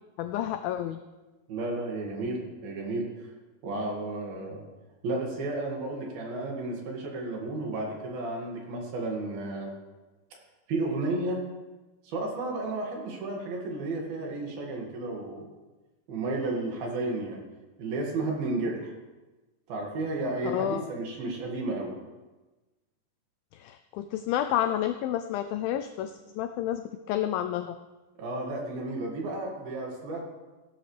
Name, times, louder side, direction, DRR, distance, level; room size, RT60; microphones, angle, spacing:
voice 1, 0.2-1.0 20.4-20.8 23.5-27.8, left 11 dB, 90° left, 9 dB, 2.0 m, -30 dB
voice 2, 1.5-3.1 3.6-4.6 5.0-9.7 10.7-11.4 12.0-15.5 16.1-17.4 17.8-18.9 19.7-21.9 28.2-30.2, right 2 dB, 65° right, -1 dB, 3.8 m, -32 dB
16.5 x 12.0 x 3.3 m, 1.2 s
omnidirectional pair, 4.7 m